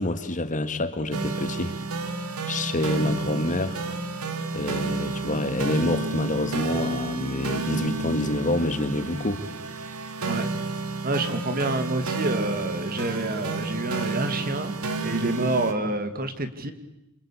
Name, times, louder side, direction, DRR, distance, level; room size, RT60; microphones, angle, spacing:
voice 1, 0.0-1.8 2.4-3.8 4.5-9.4, left 1 dB, 35° left, 10 dB, 1.8 m, -27 dB
sound 1, 1.1-15.7, right 3 dB, 75° right, 2.4 m, -31 dB
voice 2, 11.0-14.7 15.0-16.7, right 2 dB, 40° right, 9 dB, 2.2 m, -28 dB
27.5 x 25.0 x 8.5 m, 0.91 s
head